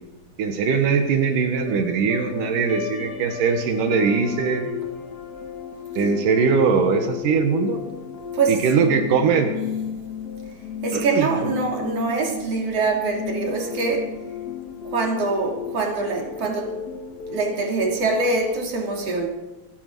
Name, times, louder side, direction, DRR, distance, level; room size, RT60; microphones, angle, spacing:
voice 1, 0.4-4.7 6.0-7.8 8.5-9.5 10.9-11.3, right 5 dB, 80° right, 5 dB, 2.9 m, -21 dB
sound 1, 1.6-18.4, left 8 dB, 60° left, 0.9 m, -34 dB
voice 2, 10.8-14.2 14.9-16.8 17.3-19.3, right 3 dB, 50° right, 0 dB, 3.7 m, -24 dB
26.5 x 11.0 x 4.8 m, 1.1 s
omnidirectional pair, 3.8 m